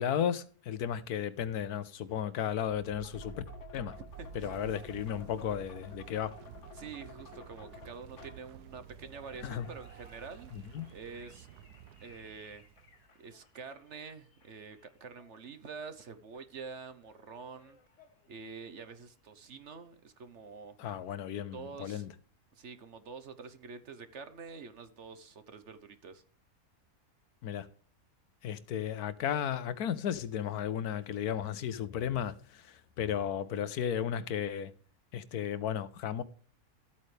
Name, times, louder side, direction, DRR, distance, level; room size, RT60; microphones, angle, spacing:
voice 1, 0.0-3.3 3.7-3.9 4.3-6.3 9.4-9.6 10.5-10.9 20.8-22.1 27.4-27.7 28.4-34.7 35.1-36.2, left 9 dB, 75° left, 1.3 m, -34 dB
sound 1, 2.5-13.2, right 7 dB, 90° right, 1.3 m, -51 dB
sound 2, 2.9-16.1 16.3-16.4 17.0-19.0, left 4 dB, 50° left, 1.7 m, -56 dB
voice 2, 4.2-4.6 6.7-10.5 10.9-11.5 12.0-12.6 13.2-17.8 18.3-20.8 21.5-22.1 22.5-26.2, right 5 dB, 55° right, 1.2 m, -47 dB
14.0 x 8.5 x 3.3 m
omnidirectional pair, 1.6 m